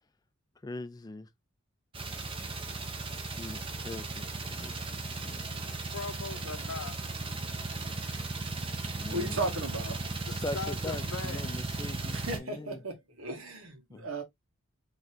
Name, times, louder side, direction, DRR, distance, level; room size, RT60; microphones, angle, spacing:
voice 1, 0.6-1.3 3.4-5.4 8.9-9.5 10.3-12.8 13.9-14.1, left 2 dB, 20° left, 0.3 m, -41 dB
sound 1, 1.9-12.4, right 3 dB, 25° right, 0.6 m, -36 dB
voice 2, 5.9-7.0 10.3-11.5, left 5 dB, 75° left, 0.6 m, -40 dB
voice 3, 8.8-10.0 12.1-14.2, right 2 dB, 90° right, 1.4 m, -36 dB
4.1 x 3.1 x 2.6 m
head